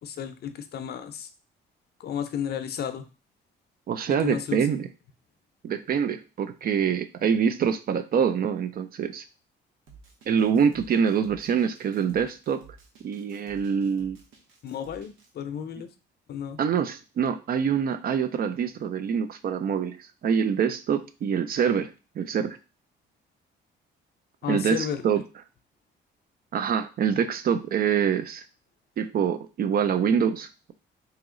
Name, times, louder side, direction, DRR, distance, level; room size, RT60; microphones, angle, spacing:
voice 1, 0.0-1.3 2.0-3.1 4.2-4.7 14.6-15.9 16.3-16.6 24.4-25.0, left 8 dB, 55° left, 9 dB, 0.5 m, -32 dB
voice 2, 3.9-4.9 5.6-9.2 10.3-12.6 13.0-14.2 16.6-20.0 20.2-22.6 24.5-25.2 26.5-28.4 29.0-30.7, right 7 dB, 50° right, 11 dB, 0.4 m, -25 dB
Drum kit, 9.9-15.3, right 5 dB, 85° right, 1.0 m, -53 dB
3.0 x 2.9 x 3.7 m, 0.32 s
cardioid pair, 105°, 20 cm